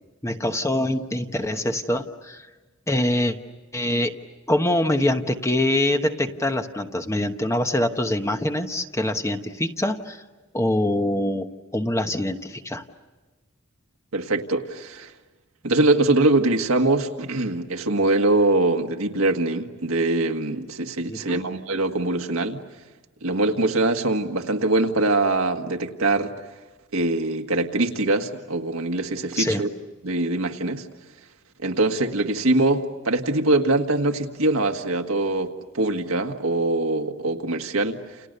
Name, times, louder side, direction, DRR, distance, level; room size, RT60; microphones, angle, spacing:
voice 1, 0.2-2.5 2.9-3.4 3.7-4.1 4.5-10.2 10.5-12.8 21.1-21.4 29.4-29.6, left 1 dB, 15° left, 6 dB, 1.1 m, -24 dB
voice 2, 14.1-15.1 15.6-22.6 23.2-26.3 26.9-29.7 30.0-30.9 31.6-38.0, right 2 dB, 75° right, 4 dB, 1.7 m, -23 dB
29.5 x 29.5 x 6.8 m, 1.2 s
head